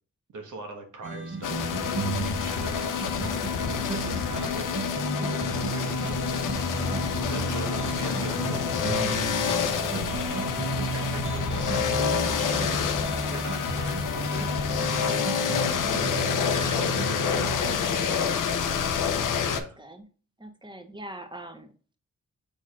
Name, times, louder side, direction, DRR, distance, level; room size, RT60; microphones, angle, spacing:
voice 1, 0.3-6.9 7.3-12.8 13.3-15.6 16.1-18.2 18.7-19.1 19.4-19.8, right 2 dB, 70° right, 3 dB, 1.2 m, -42 dB
sound 1, 1.0-17.8, right 2 dB, 40° right, 0.8 m, -34 dB
sound 2, 1.4-19.6, left 7 dB, 75° left, 0.6 m, -28 dB
sound 3, 6.5-13.8, left 1 dB, 10° left, 0.5 m, -38 dB
voice 2, 7.2-7.9 15.8-16.2 19.1-19.4 19.8-20.0 20.4-22.0, right 1 dB, 15° right, 7 dB, 1.0 m, -44 dB
4.9 x 4.1 x 2.4 m, 0.37 s
cardioid pair, 50°, 31 cm